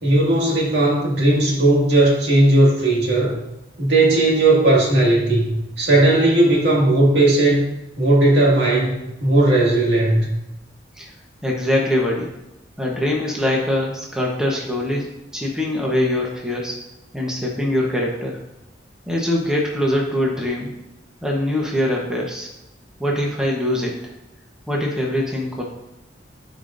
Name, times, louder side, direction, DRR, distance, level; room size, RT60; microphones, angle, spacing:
voice 1, 0.0-3.4 3.8-7.6 8.0-10.3, right 2 dB, 70° right, -3 dB, 2.2 m, -16 dB
voice 2, 11.4-12.3 12.8-16.7 17.1-18.4 19.1-20.7 21.2-22.5 23.0-24.0 24.7-25.6, left 1 dB, 5° right, -2 dB, 1.1 m, -23 dB
14.0 x 5.0 x 2.7 m, 0.94 s
head